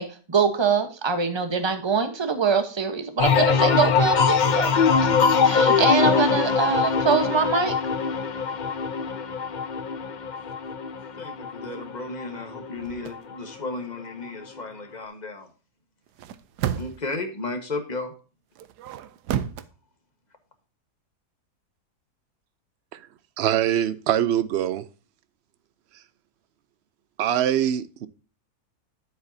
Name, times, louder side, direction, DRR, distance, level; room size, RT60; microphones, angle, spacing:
voice 1, 0.0-4.7 5.4-7.7, right 5 dB, 20° right, 0.9 m, -24 dB
sound 1, 3.2-12.7 13.1-13.7, left 6 dB, 55° left, 0.5 m, -22 dB
voice 2, 11.2-15.5 16.8-18.1, left 3 dB, 30° left, 1.4 m, -34 dB
sound 2, 12.8-13.2 16.1-17.1 18.6-19.7, right 10 dB, 90° right, 1.2 m, -31 dB
voice 3, 23.4-24.9 27.2-28.1, right 11 dB, 70° right, 0.6 m, -23 dB
9.7 x 8.1 x 2.7 m
omnidirectional pair, 1.7 m